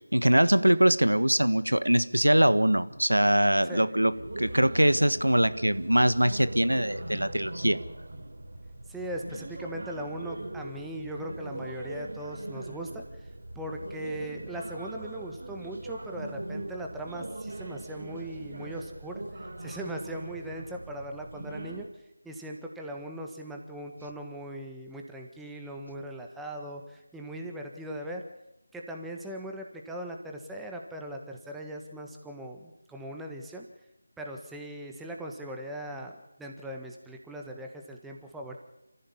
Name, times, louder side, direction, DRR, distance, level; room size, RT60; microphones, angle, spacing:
voice 1, 0.1-4.1 4.4-7.8, right 1 dB, 90° right, 14 dB, 1.5 m, -22 dB
sound 1, 4.1-21.9, right 1 dB, 55° right, 3.8 m, -41 dB
voice 2, 8.9-13.3 13.5-19.2 19.6-28.2 28.7-33.7 34.2-38.6, right 1 dB, 5° right, 1 dB, 1.7 m, -39 dB
28.0 x 15.0 x 8.7 m, 0.89 s
figure-of-eight pair, 165°, 0 cm